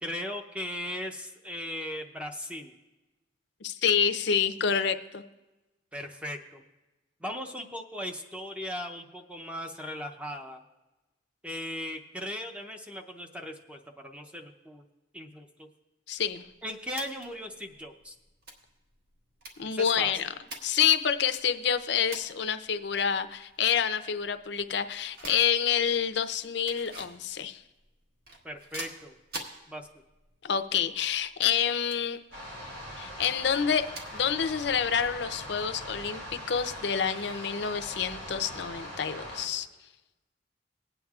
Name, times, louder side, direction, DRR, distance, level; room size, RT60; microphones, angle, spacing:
voice 1, 0.0-2.7 5.9-6.6 7.2-10.6 11.4-14.8 15.1-15.7 16.6-18.1 19.7-20.1 28.4-29.2 29.7-29.9, left 1 dB, 5° right, 4 dB, 0.6 m, -38 dB
voice 2, 3.6-5.2 16.1-16.4 19.6-20.3 20.6-27.6 30.4-32.2 33.0-39.7, left 7 dB, 65° left, 10 dB, 0.5 m, -28 dB
sound 1, 16.2-35.7, right 2 dB, 55° right, 1.4 m, -49 dB
sound 2, 32.3-39.5, equal, 80° right, 3.0 m, -41 dB
20.0 x 8.9 x 2.4 m, 1.1 s
head